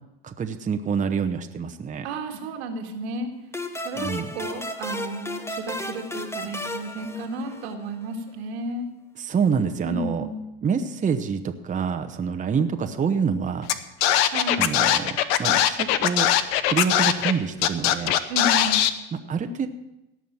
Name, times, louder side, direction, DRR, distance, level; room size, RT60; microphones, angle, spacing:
voice 1, 0.2-2.1 4.0-4.3 9.2-10.3 10.6-13.7 14.6-16.3 16.7-18.1 19.3-19.7, right 6 dB, 25° right, 6 dB, 1.0 m, -26 dB
voice 2, 2.0-3.3 3.7-8.9 9.8-10.4 14.3-14.8 18.3-18.8, right 1 dB, 80° right, 4 dB, 1.9 m, -32 dB
sound 1, 3.5-7.9, left 1 dB, 10° left, 0.9 m, -34 dB
Scratching (performance technique), 13.7-13.8 14.0-17.3 17.6-18.9, left 11 dB, 75° left, 0.9 m, -20 dB
17.5 x 6.1 x 7.2 m, 0.93 s
hypercardioid pair, 90°, 31 cm